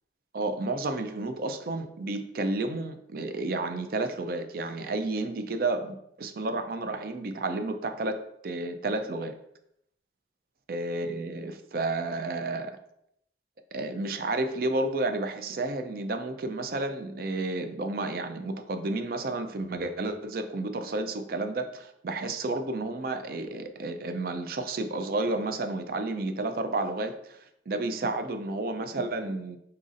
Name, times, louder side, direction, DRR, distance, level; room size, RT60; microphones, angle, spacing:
voice 1, 0.3-9.3 10.7-12.8 13.7-29.6, right 2 dB, 55° right, 8 dB, 0.4 m, -31 dB
3.9 x 3.9 x 2.5 m, 0.75 s
head